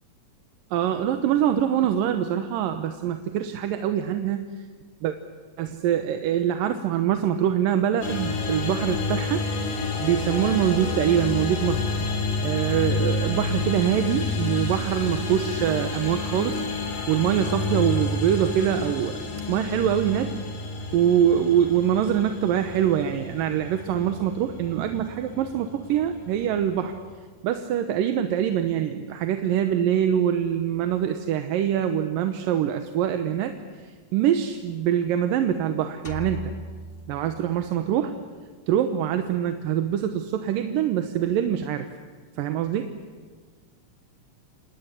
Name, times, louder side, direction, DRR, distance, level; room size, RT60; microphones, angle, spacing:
voice 1, 0.7-4.5 5.0-5.2 5.6-9.4 10.0-11.9 12.4-19.2 19.5-20.3 20.9-27.0 27.4-33.5 33.8-36.5 37.1-38.1 38.7-41.9 42.4-43.0, right 10 dB, 80° right, 7 dB, 2.7 m, -24 dB
sound 1, 8.0-27.1, left 3 dB, 70° left, 4.6 m, -30 dB
sound 2, 36.0-37.9, left 3 dB, 25° left, 1.3 m, -38 dB
27.5 x 19.0 x 10.0 m, 1.5 s
omnidirectional pair, 4.0 m